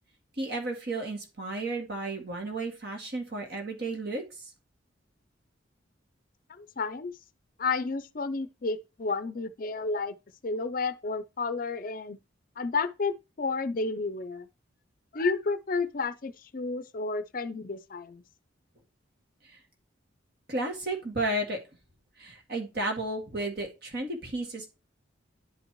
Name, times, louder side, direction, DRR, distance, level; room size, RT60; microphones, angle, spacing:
voice 1, 0.4-4.5 19.5-19.6 20.5-21.6 22.2-24.7, right 2 dB, 55° right, 2.0 m, -33 dB
voice 2, 6.5-7.1 7.6-10.1 10.4-12.2 12.6-14.5 15.1-18.2, left 4 dB, 45° left, 0.5 m, -31 dB
10.5 x 5.4 x 3.0 m
head